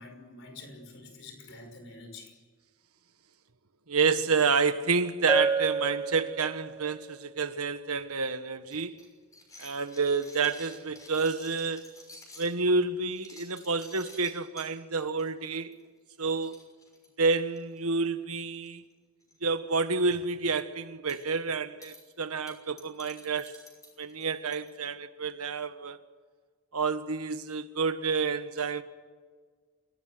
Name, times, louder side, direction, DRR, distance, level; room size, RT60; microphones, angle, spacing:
voice 1, 0.0-2.3, left 3 dB, 55° left, 5.8 m, -47 dB
voice 2, 3.9-9.0 9.6-11.9 12.4-15.8 16.2-16.6 17.2-18.8 19.4-23.6 24.0-26.0 26.7-28.8, right 4 dB, 85° right, 1.5 m, -29 dB
Bell, 5.3-6.9, right 3 dB, 15° right, 0.8 m, -29 dB
sound 1, 8.7-12.5 13.0-14.7 15.2-15.5 15.7-15.9 16.1-16.2 16.4-17.8 18.5-18.9 19.2-19.4 19.7-20.2 21.1-21.3 21.8-22.0 22.5-24.7, left 2 dB, 15° left, 6.2 m, -51 dB
29.5 x 17.5 x 7.9 m
head